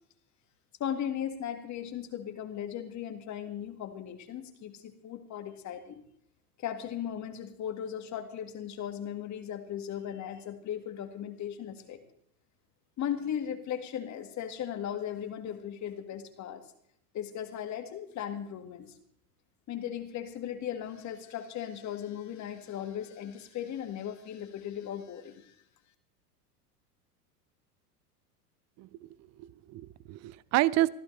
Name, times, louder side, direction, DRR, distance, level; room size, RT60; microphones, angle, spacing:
voice 1, 0.8-6.0 6.6-12.0 13.0-16.6 17.1-19.0 19.7-25.5, left 9 dB, 35° left, 7 dB, 2.1 m, -37 dB
voice 2, 28.8-29.1 29.4-30.9, right 17 dB, 35° right, 21 dB, 0.6 m, -29 dB
24.5 x 14.5 x 3.4 m, 0.71 s
hypercardioid pair, 95°, 48 cm